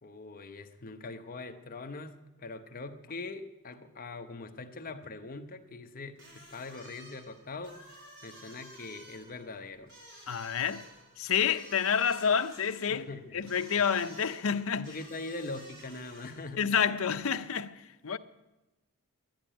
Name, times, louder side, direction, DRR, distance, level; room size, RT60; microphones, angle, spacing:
voice 1, 0.0-7.8 8.2-9.9 12.9-13.4 14.7-16.7, left 3 dB, 40° left, 0.9 m, -42 dB
sound 1, 6.2-16.6, right 1 dB, 55° right, 4.3 m, -53 dB
voice 2, 10.3-10.9 11.2-13.1 13.3-14.9 16.6-18.2, left 7 dB, 65° left, 0.6 m, -29 dB
11.0 x 10.5 x 9.1 m
head